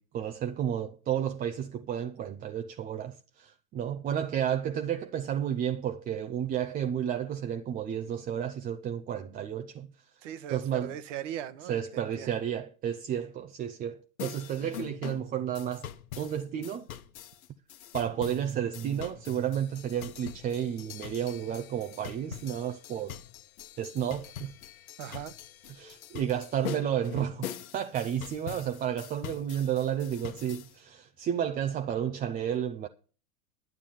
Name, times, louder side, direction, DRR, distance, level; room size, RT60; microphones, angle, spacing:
voice 1, 0.0-9.9 10.5-10.9 11.7-15.9 16.2-16.9 17.9-23.2 23.8-24.5 25.7-32.9, right 9 dB, 20° right, 0.5 m, -32 dB
voice 2, 10.2-12.3 25.0-25.3, right 10 dB, 55° right, 1.2 m, -39 dB
sound 1, 14.2-30.7, left 10 dB, 70° left, 1.1 m, -43 dB
11.5 x 7.3 x 7.0 m
hypercardioid pair, 105°, 43 cm